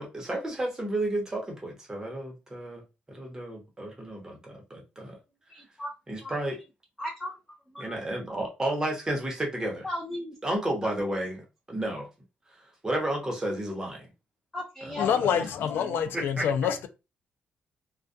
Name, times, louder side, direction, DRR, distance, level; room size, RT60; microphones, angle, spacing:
voice 1, 0.0-2.8 3.1-5.2 6.1-6.6 7.8-9.8 10.4-12.1 12.8-14.1 14.8-15.3 16.1-16.5, right 1 dB, 15° right, 0.9 m, -32 dB
voice 2, 5.5-5.9 6.2-6.3 7.0-7.3 7.7-8.0 9.8-10.4 14.5-16.0, left 1 dB, 10° left, 0.4 m, -37 dB
voice 3, 15.0-16.9, left 8 dB, 80° left, 0.3 m, -26 dB
2.3 x 2.2 x 2.5 m
cardioid pair, 130°, 4 cm